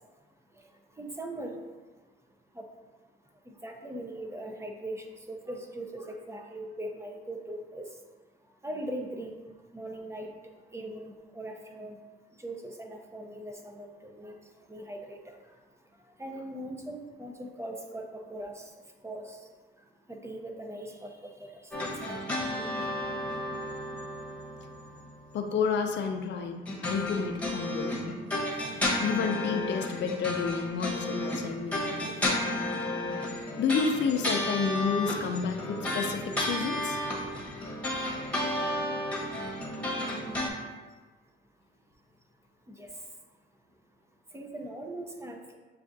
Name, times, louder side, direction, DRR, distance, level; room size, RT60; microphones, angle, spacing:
voice 1, 1.0-1.5 2.6-2.7 3.5-7.8 8.6-9.3 9.7-10.3 10.7-12.0 12.4-14.3 14.7-15.2 16.2-18.6 19.0-19.4 20.1-22.1 22.6-22.7 42.7-42.9 44.3-45.6, right 1 dB, 15° right, 2 dB, 0.6 m, -40 dB
sound 1, 21.7-25.4 26.7-40.5, left 1 dB, 5° left, 1.1 m, -32 dB
voice 2, 25.3-28.2 28.8-32.1 33.6-37.0, left 5 dB, 65° left, 5 dB, 0.5 m, -30 dB
7.3 x 2.5 x 2.6 m, 1.3 s
cardioid pair, 90°, 20 cm